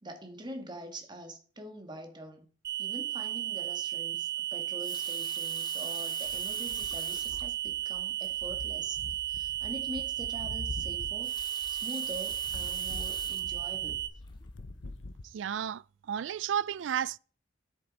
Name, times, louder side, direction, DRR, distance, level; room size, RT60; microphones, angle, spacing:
voice 1, 0.0-2.5 2.8-14.1, right 1 dB, 25° right, 1.7 m, -44 dB
sound 1, 2.6-14.1, right 13 dB, 55° right, 1.5 m, -34 dB
Water tap faucet, 4.6-7.5 8.3-8.4 8.7-8.8 11.0-13.6 14.3-14.5, left 6 dB, 25° left, 1.0 m, -45 dB
sound 2, 6.3-15.2, left 2 dB, 80° left, 0.8 m, -45 dB
voice 2, 15.3-17.2, right 9 dB, 90° right, 0.4 m, -32 dB
10.0 x 8.1 x 4.1 m
head